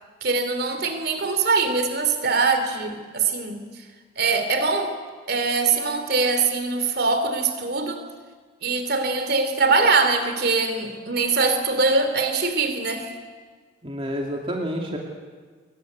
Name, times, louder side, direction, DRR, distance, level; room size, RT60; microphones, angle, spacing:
voice 1, 0.2-3.6 4.2-5.0 5.3-8.0 8.6-13.2, right 4 dB, 50° right, 8 dB, 2.9 m, -22 dB
voice 2, 13.8-15.0, equal, 25° right, 0 dB, 2.6 m, -29 dB
24.5 x 23.0 x 9.3 m, 1.5 s
head